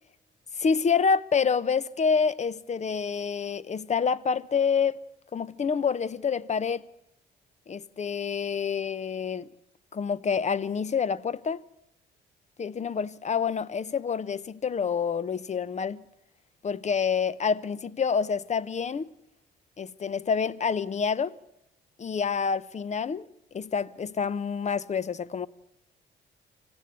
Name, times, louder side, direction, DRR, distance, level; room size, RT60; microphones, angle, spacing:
voice 1, 0.6-5.0 5.3-6.9 7.7-9.5 9.9-11.6 12.6-16.0 16.6-19.1 19.8-21.3 22.0-23.2 23.5-25.5, left 6 dB, 35° left, 0.8 m, -27 dB
26.0 x 15.5 x 8.2 m
cardioid pair, 90°, 20 cm